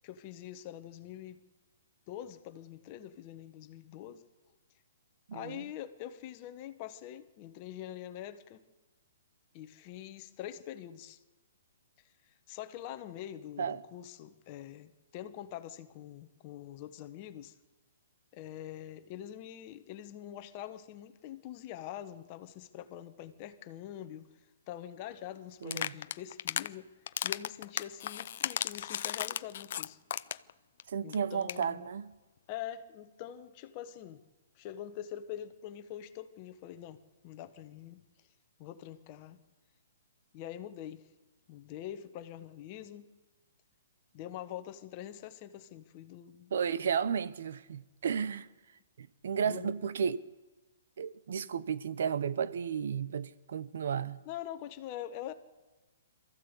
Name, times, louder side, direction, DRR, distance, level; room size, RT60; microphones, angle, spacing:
voice 1, 0.0-1.4 2.1-4.2 5.3-8.6 9.5-11.2 12.2-17.6 18.3-24.3 24.7-26.9 27.2-30.0 31.0-31.9 32.5-34.2 34.5-38.0 38.6-39.4 40.3-41.1 41.5-43.1 44.1-46.5 49.4-49.7 54.2-55.3, left 11 dB, 35° left, 1.4 m, -44 dB
voice 2, 5.3-5.6 13.6-13.8 25.6-25.9 30.9-32.1 46.5-48.5 49.0-50.2 51.0-54.2, right 7 dB, 65° right, 1.0 m, -33 dB
sound 1, 25.6-26.7 27.1-30.5 30.8-30.9 31.1-31.2 31.4-31.6, left 10 dB, 55° left, 0.6 m, -35 dB
23.0 x 14.5 x 8.3 m
hypercardioid pair, 150°, 0 cm